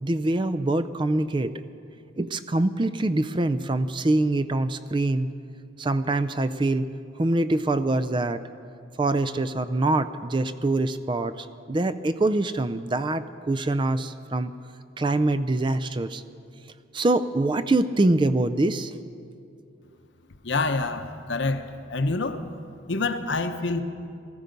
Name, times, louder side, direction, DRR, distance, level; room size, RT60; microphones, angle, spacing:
voice 1, 0.0-1.6 2.2-5.3 5.8-6.9 7.2-8.4 9.0-14.5 15.0-16.2 16.9-18.9, right 2 dB, 25° right, 13 dB, 0.4 m, -24 dB
voice 2, 20.4-22.4 22.9-23.8, left 3 dB, 65° left, 8 dB, 0.9 m, -27 dB
19.0 x 14.0 x 5.3 m, 2.4 s
head